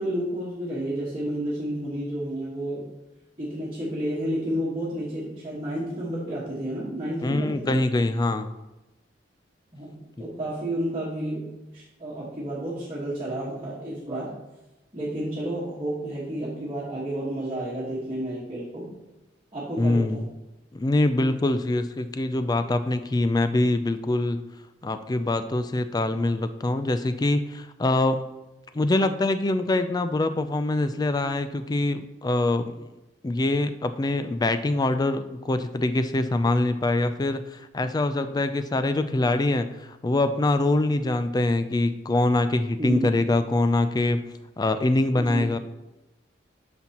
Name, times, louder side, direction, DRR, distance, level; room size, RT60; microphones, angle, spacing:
voice 1, 0.0-2.9 3.4-7.8 9.7-9.9 10.2-14.3 14.9-18.9 19.5-20.3 42.8-43.2 45.1-45.6, right 1 dB, 25° right, -8 dB, 1.5 m, -31 dB
voice 2, 7.2-8.5 19.8-20.3 20.7-24.4 24.8-28.2 28.7-32.9 33.2-44.2 44.6-45.6, left 2 dB, 20° left, 10 dB, 0.4 m, -24 dB
9.3 x 6.0 x 2.9 m, 0.99 s
head